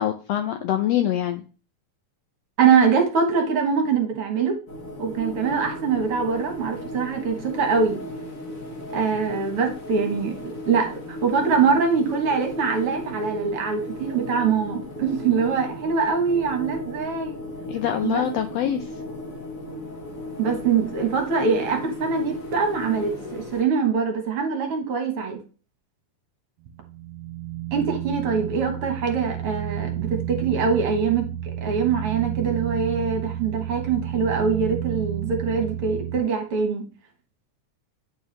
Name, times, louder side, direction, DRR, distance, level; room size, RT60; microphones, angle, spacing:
voice 1, 0.0-1.4 17.7-19.0, left 11 dB, 90° left, 7 dB, 1.4 m, -25 dB
voice 2, 2.6-4.6 5.0-8.0 8.9-17.4 18.0-18.3 20.4-25.4 27.7-31.3 31.6-36.9, right 5 dB, 55° right, 4 dB, 1.9 m, -23 dB
sound 1, 4.7-23.6, left 1 dB, 60° left, 0.8 m, -36 dB
sound 2, 26.7-36.2, right 12 dB, 85° right, 2.0 m, -31 dB
9.2 x 4.7 x 3.2 m, 0.35 s
omnidirectional pair, 3.6 m